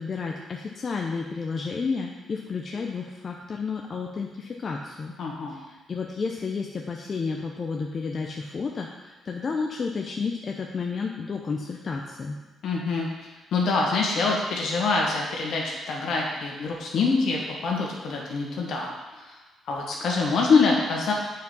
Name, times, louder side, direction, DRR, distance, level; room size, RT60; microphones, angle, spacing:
voice 1, 0.0-5.1 5.5-12.4, left 4 dB, 40° left, 1 dB, 0.7 m, -31 dB
voice 2, 5.2-5.6 12.6-13.1 13.5-19.4 19.7-21.1, left 4 dB, 70° left, -2 dB, 1.8 m, -25 dB
7.3 x 4.7 x 5.4 m, 1.2 s
cardioid pair, 90°, 0 cm